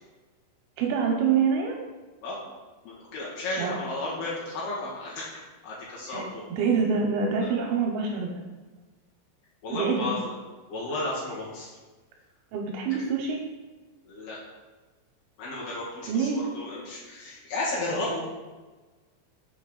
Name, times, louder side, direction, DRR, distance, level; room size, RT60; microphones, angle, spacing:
voice 1, 0.8-1.8 3.6-3.7 6.1-6.2 6.5-8.4 9.7-10.1 12.5-13.4 16.1-16.4, right 6 dB, 85° right, 0 dB, 2.8 m, -26 dB
voice 2, 2.8-5.3 5.6-6.4 9.6-10.3 10.7-11.7 13.0-13.1 14.1-14.4 15.4-16.3 16.5-18.2, left 2 dB, 60° left, -7 dB, 3.2 m, -33 dB
7.8 x 5.3 x 3.9 m, 1.3 s
omnidirectional pair, 5.9 m